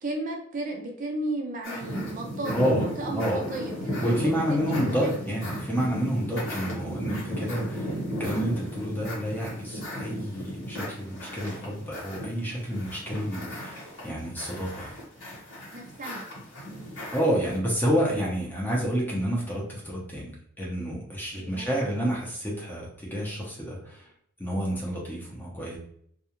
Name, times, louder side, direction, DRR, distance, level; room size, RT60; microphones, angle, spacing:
voice 1, 0.0-4.7 5.0-5.1 15.7-16.2 21.3-21.9, right 2 dB, 40° right, 0 dB, 0.5 m, -35 dB
sound 1, 1.6-17.6, equal, 70° left, 1.1 m, -35 dB
voice 2, 2.5-2.8 3.1-3.5 4.0-7.9 8.2-14.9 17.1-24.1 24.4-25.8, equal, 10° left, -3 dB, 0.7 m, -29 dB
2.4 x 2.3 x 2.9 m, 0.66 s
head